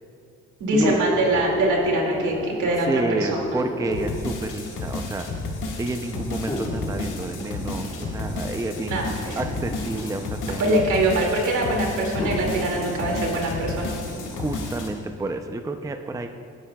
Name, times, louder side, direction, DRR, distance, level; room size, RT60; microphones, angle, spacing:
voice 1, 0.6-3.4 8.9-9.4 10.6-13.9, right 2 dB, 80° right, 0 dB, 2.4 m, -23 dB
sound 1, 0.7-4.4 5.3-5.4 6.5-10.4 11.4-11.5 12.2-14.8 15.3-15.4, left 1 dB, 15° left, 1.3 m, -32 dB
voice 2, 2.8-5.3 5.8-9.0 9.3-10.8 14.4-16.3, right 2 dB, 10° right, 6 dB, 0.5 m, -30 dB
sound 2, 3.9-14.9, left 3 dB, 85° left, 1.7 m, -32 dB
16.5 x 10.0 x 2.3 m, 2.5 s
cardioid pair, 90°, 30 cm